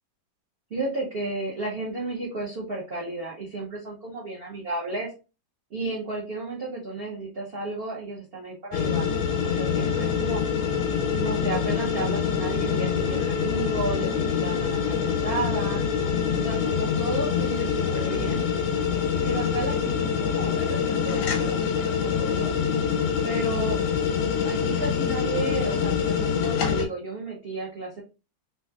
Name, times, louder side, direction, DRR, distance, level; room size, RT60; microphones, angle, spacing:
voice 1, 0.7-5.1 5.7-9.1 9.4-10.4 11.1-15.8 16.3-18.5 19.2-22.6 23.2-23.8 24.4-28.0, right 2 dB, 65° right, -4 dB, 0.5 m, -33 dB
sound 1, 8.7-26.9, left 7 dB, 85° left, 1.4 m, -25 dB
3.3 x 2.9 x 2.3 m, 0.32 s
omnidirectional pair, 2.1 m